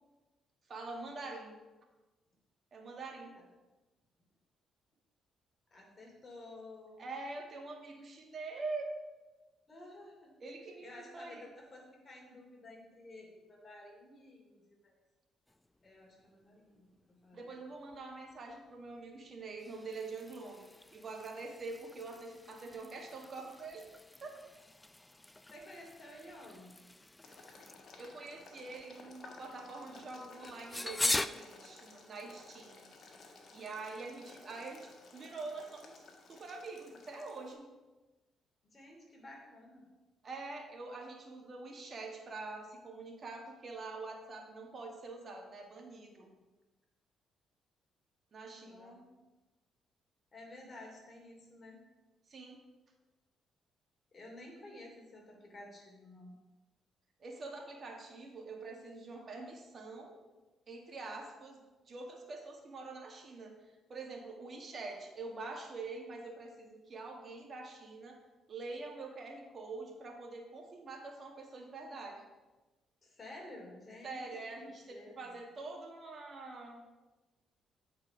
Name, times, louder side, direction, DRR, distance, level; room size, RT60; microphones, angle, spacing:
voice 1, 0.7-1.6 2.7-3.4 7.0-8.9 10.4-10.9 11.1-11.4 17.3-23.9 24.2-24.3 28.0-32.9 33.5-36.0 36.3-37.7 40.2-46.3 48.3-49.0 52.3-52.6 57.2-60.2 60.7-61.6 61.9-63.5 63.9-68.2 68.5-72.2 74.0-76.8, right 3 dB, 45° right, 2 dB, 1.7 m, -45 dB
voice 2, 5.7-7.0 9.7-10.3 10.8-15.0 15.8-17.6 25.5-26.9 38.6-39.9 48.5-49.1 50.3-51.8 54.1-56.4 73.0-74.3 74.9-75.3, left 1 dB, 35° left, -1 dB, 2.8 m, -52 dB
sound 1, 15.5-31.3, left 1 dB, 10° left, 0.4 m, -43 dB
Boiling, 27.2-37.5, left 3 dB, 55° left, 1.4 m, -56 dB
8.3 x 4.6 x 5.8 m, 1.1 s
cardioid pair, 90°, 0 cm